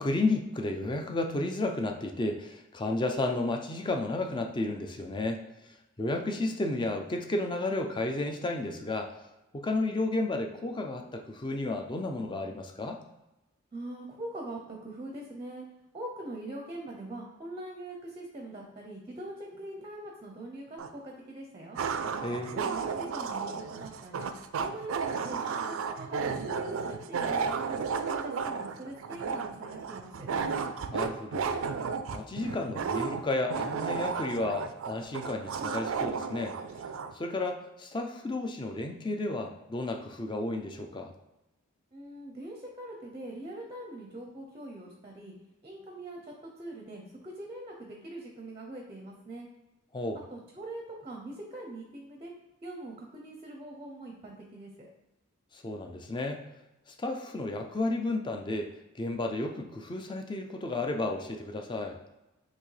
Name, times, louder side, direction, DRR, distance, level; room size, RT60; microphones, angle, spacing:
voice 1, 0.0-9.1 9.5-13.0 22.2-22.6 30.9-31.6 32.1-36.6 37.1-41.1 49.9-50.2 55.5-56.4 56.9-58.7 59.0-62.0, left 2 dB, 20° left, 4 dB, 0.4 m, -32 dB
voice 2, 13.7-15.6 15.9-21.8 22.5-27.8 28.1-30.3 41.9-45.3 45.6-46.2 46.6-49.5 50.3-52.3 52.6-54.9, right 1 dB, 25° right, 1 dB, 0.5 m, -43 dB
sound 1, 20.8-20.9 21.7-37.1, right 5 dB, 70° right, 0.3 m, -33 dB
5.9 x 2.8 x 3.2 m, 0.99 s
head